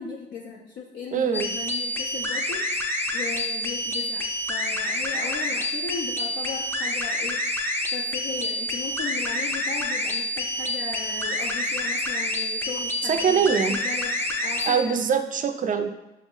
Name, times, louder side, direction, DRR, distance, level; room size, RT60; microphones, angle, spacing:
voice 1, 0.0-2.7 3.1-7.4 7.9-15.0, left 5 dB, 60° left, 0 dB, 0.5 m, -37 dB
voice 2, 1.1-1.5 13.0-13.8 14.6-15.9, right 7 dB, 40° right, 8 dB, 0.4 m, -23 dB
sound 1, 1.3-14.8, left 1 dB, 10° left, 0.5 m, -28 dB
5.5 x 2.0 x 3.6 m, 0.98 s
cardioid pair, 90°, 20 cm